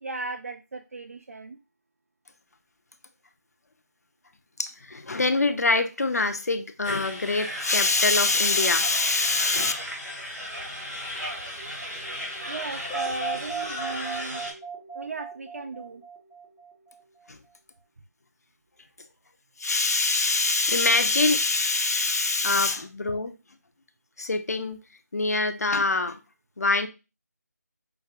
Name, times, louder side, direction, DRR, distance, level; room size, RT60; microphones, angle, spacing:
voice 1, 0.0-1.6 12.4-14.5 14.9-16.0, right 2 dB, 55° right, 0.4 m, -36 dB
voice 2, 4.6-9.7 17.3-17.4 19.6-23.4 24.2-24.8 25.1-26.2 26.6-26.9, left 3 dB, 65° left, 0.6 m, -24 dB
sound 1, 6.8-14.5, equal, 80° right, 2.5 m, -35 dB
sound 2, 12.9-16.9, right 5 dB, ahead, 0.5 m, -36 dB
5.8 x 2.5 x 2.4 m
figure-of-eight pair, 160°, 9 cm